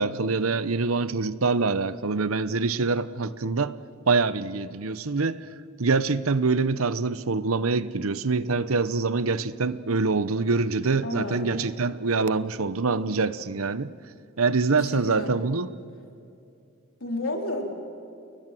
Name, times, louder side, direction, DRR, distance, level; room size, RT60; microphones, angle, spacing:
voice 1, 0.0-3.8 4.1-5.4 5.8-13.9 14.4-15.7, right 4 dB, 75° right, 0.9 m, -25 dB
voice 2, 11.0-11.6 14.7-15.3 17.0-17.7, left 2 dB, 70° left, 4.2 m, -32 dB
30.0 x 21.5 x 7.7 m
head